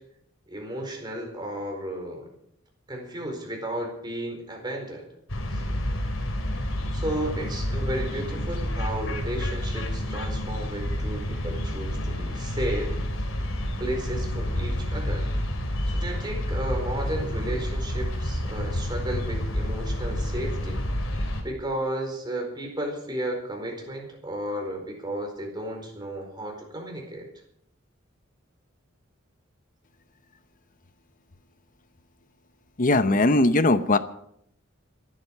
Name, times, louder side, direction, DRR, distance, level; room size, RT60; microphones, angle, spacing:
voice 1, 0.5-2.3 2.9-5.1 5.5-5.6 6.9-13.0 13.8-15.3 15.9-20.8 21.4-27.3, right 1 dB, 20° right, 1 dB, 4.6 m, -33 dB
sound 1, 5.3-21.4, left 1 dB, 85° left, 3.2 m, -29 dB
voice 2, 32.8-34.0, left 2 dB, 40° left, 12 dB, 0.9 m, -19 dB
26.0 x 10.0 x 4.8 m, 0.70 s
head